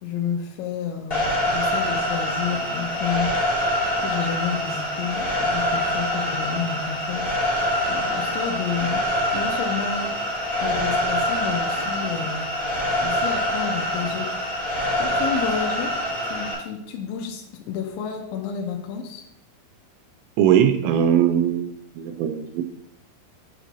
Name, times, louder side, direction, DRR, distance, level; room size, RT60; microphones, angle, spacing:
voice 1, 0.0-3.3 4.0-7.3 7.9-9.0 9.3-10.1 10.6-12.5 13.0-14.4 15.0-15.9 16.2-19.2, left 7 dB, 80° left, 1 dB, 2.9 m, -30 dB
sound 1, 1.1-16.5, equal, 20° left, 1.9 m, -25 dB
voice 2, 20.4-22.6, right 9 dB, 85° right, 7 dB, 3.0 m, -20 dB
8.1 x 5.9 x 2.7 m, 0.78 s
omnidirectional pair, 5.7 m